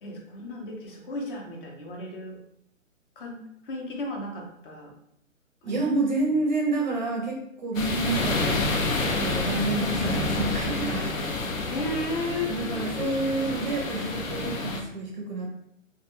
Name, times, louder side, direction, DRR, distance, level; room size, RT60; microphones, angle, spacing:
voice 1, 0.0-2.4 3.2-4.9 5.6-5.8 9.7-9.8 11.7-12.9, left 1 dB, 45° left, 0 dB, 0.6 m, -34 dB
voice 2, 5.6-11.1 12.4-15.5, right 2 dB, 35° right, 0 dB, 0.5 m, -29 dB
sound 1, 7.7-14.8, left 2 dB, 90° left, 0.6 m, -28 dB
2.2 x 2.2 x 2.9 m, 0.74 s
hypercardioid pair, 140°, 39 cm